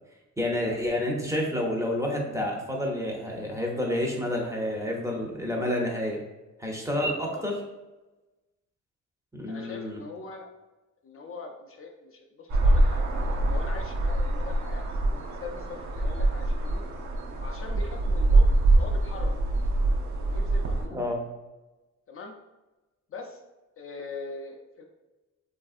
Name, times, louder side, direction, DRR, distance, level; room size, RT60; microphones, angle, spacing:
voice 1, 0.4-6.2 6.6-7.6 9.3-10.0 20.9-21.2, left 1 dB, 10° right, 0 dB, 0.5 m, -29 dB
voice 2, 9.5-10.5 11.0-13.0 13.5-16.8 17.4-18.5 18.8-19.3 20.1-21.0 22.1-22.3 23.1-23.4 23.8-24.8, left 4 dB, 45° left, 2 dB, 0.4 m, -42 dB
sound 1, 12.5-20.9, right 2 dB, 65° right, 0.5 m, -24 dB
3.3 x 2.5 x 2.4 m, 1.1 s
cardioid pair, 90°, 31 cm